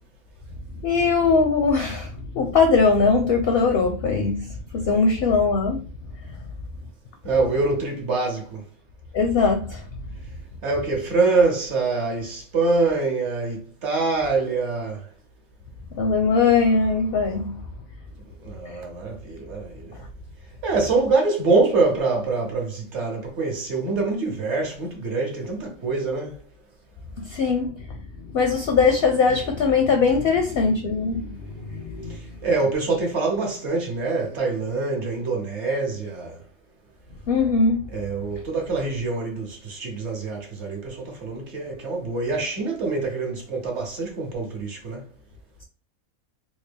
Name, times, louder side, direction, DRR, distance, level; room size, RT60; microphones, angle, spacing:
voice 1, 0.8-5.8 9.1-9.8 16.0-17.6 27.2-28.0 28.2-32.2 37.3-37.8, left 4 dB, 60° left, 0.6 m, -21 dB
voice 2, 7.2-8.6 10.6-15.1 18.4-20.0 20.6-26.4 31.7-36.4 37.9-45.0, right 3 dB, 60° right, 1.2 m, -25 dB
3.6 x 2.2 x 3.4 m
omnidirectional pair, 1.4 m